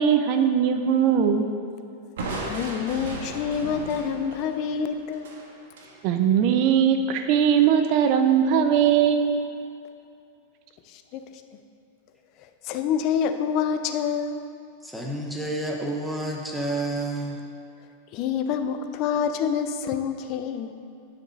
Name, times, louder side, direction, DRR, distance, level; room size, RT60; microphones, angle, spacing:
voice 1, 0.0-1.5 6.0-9.4, right 8 dB, 45° right, 7 dB, 0.6 m, -20 dB
Crushing, 2.2-6.0, right 2 dB, 85° right, 1.6 m, -36 dB
voice 2, 2.5-5.3 10.9-11.2 12.6-14.4 18.1-20.7, left 7 dB, 40° left, 8 dB, 0.5 m, -27 dB
voice 3, 14.8-17.4, right 1 dB, ahead, -1 dB, 1.0 m, -29 dB
10.5 x 6.1 x 4.1 m, 2.6 s
supercardioid pair, 150°, 0 cm